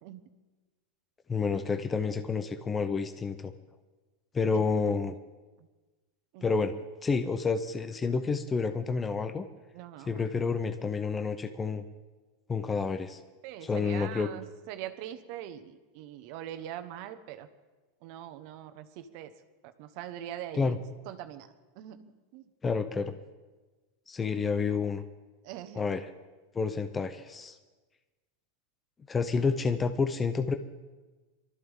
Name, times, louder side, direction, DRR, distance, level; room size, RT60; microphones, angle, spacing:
voice 1, 1.3-3.5 4.3-5.2 6.4-6.7 7.0-9.5 10.1-11.8 12.5-13.2 13.6-14.3 20.5-20.8 22.6-23.1 24.1-25.0 25.7-26.1 26.5-27.6 29.1-30.5, left 5 dB, 15° left, 8 dB, 0.7 m, -29 dB
voice 2, 9.7-10.3 13.4-17.5 18.0-19.3 19.6-22.5 25.4-26.0, right 11 dB, 50° right, 10 dB, 1.2 m, -43 dB
23.0 x 13.5 x 3.7 m, 1.2 s
supercardioid pair, 150°, 0 cm